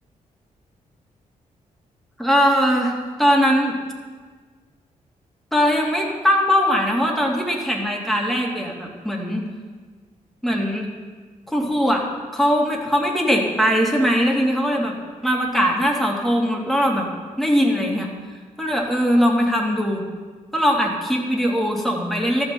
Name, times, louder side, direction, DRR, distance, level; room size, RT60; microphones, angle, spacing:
voice 1, 2.2-3.8 5.5-9.5 10.4-10.9 11.5-12.0 12.3-14.9 15.2-17.1 17.4-18.1 18.6-20.0 20.5-22.4, equal, ahead, -1 dB, 2.5 m, -20 dB
13.5 x 6.4 x 7.9 m, 1.5 s
cardioid pair, 95°, 14 cm